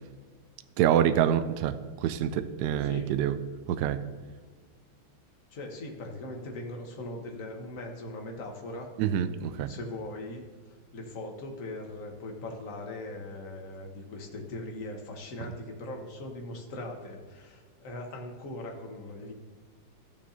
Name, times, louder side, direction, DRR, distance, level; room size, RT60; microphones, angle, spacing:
voice 1, 0.8-1.8 2.0-3.4 3.7-4.0 9.0-9.7, right 10 dB, 80° right, 11 dB, 0.9 m, -26 dB
voice 2, 2.8-3.1 5.5-8.9 9.5-10.4 10.9-19.3, left 2 dB, 45° left, 2 dB, 1.5 m, -40 dB
14.5 x 7.1 x 2.8 m, 1.5 s
omnidirectional pair, 2.3 m